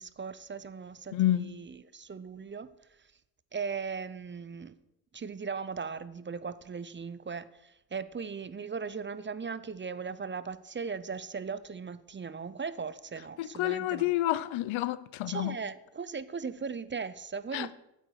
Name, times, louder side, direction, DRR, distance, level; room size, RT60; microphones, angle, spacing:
voice 1, 0.0-2.7 3.5-4.8 5.1-14.1 15.3-17.7, right 5 dB, 25° right, 0.5 m, -38 dB
voice 2, 1.1-1.5 13.4-15.6 17.5-17.7, left 14 dB, 90° left, 0.6 m, -29 dB
9.2 x 7.7 x 6.4 m
cardioid pair, 80°, 46 cm